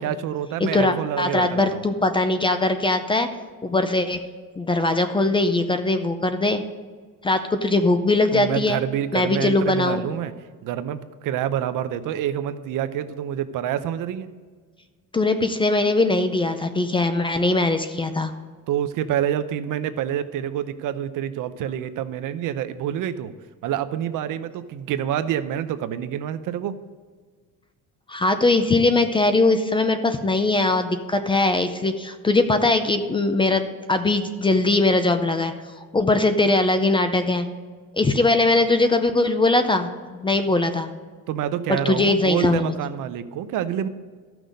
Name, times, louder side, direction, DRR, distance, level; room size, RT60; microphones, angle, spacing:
voice 1, 0.0-1.8 8.3-10.3 10.6-14.3 18.7-23.3 23.6-26.7 41.3-43.9, right 10 dB, 65° right, 12 dB, 0.7 m, -27 dB
voice 2, 0.6-3.3 3.6-4.2 4.6-6.6 7.2-8.8 9.1-10.0 15.1-18.3 28.1-35.5 35.9-37.5 37.9-40.9 41.7-42.7, left 2 dB, 15° left, 8 dB, 0.5 m, -21 dB
14.0 x 6.1 x 5.2 m, 1.5 s
cardioid pair, 160°, 35 cm